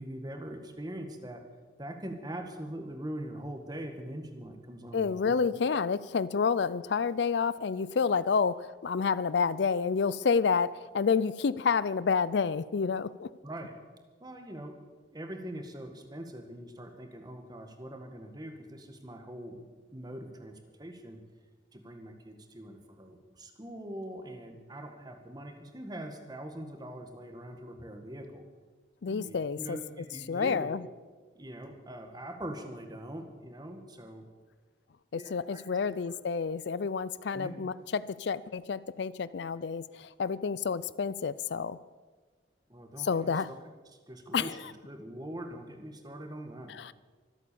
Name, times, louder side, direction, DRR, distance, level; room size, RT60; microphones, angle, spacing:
voice 1, 0.0-1.4 1.8-5.4 13.4-13.7 14.2-14.8 15.1-19.7 19.9-21.2 21.7-28.4 29.1-30.7 31.4-34.3 35.1-36.2 37.3-37.6 42.7-43.4 44.1-46.7, right 1 dB, 20° right, 5 dB, 1.8 m, -42 dB
voice 2, 4.9-13.3 29.0-29.8 30.3-30.8 35.1-41.8 43.0-43.5 44.3-44.6 46.7-46.9, left 5 dB, 65° left, 18 dB, 0.4 m, -29 dB
24.5 x 8.4 x 7.0 m, 1.4 s
head